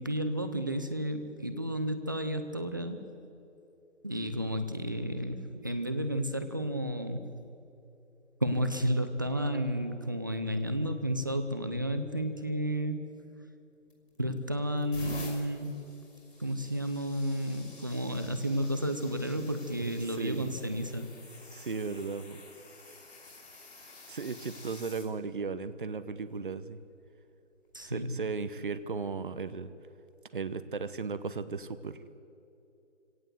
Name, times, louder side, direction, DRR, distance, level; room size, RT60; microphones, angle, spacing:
voice 1, 0.0-3.0 4.0-7.3 8.4-13.1 14.2-15.8 16.4-21.1 27.7-28.1, equal, 15° right, 9 dB, 0.7 m, -32 dB
sound 1, 13.9-14.3 14.8-25.1 25.9-26.2 27.7-27.9, left 2 dB, 60° left, 5.6 m, -49 dB
voice 2, 20.2-20.5 21.5-22.4 24.1-26.8 27.8-29.7 30.3-32.0, right 4 dB, 45° right, 13 dB, 1.0 m, -36 dB
25.0 x 17.5 x 8.1 m, 2.8 s
figure-of-eight pair, 160°, 36 cm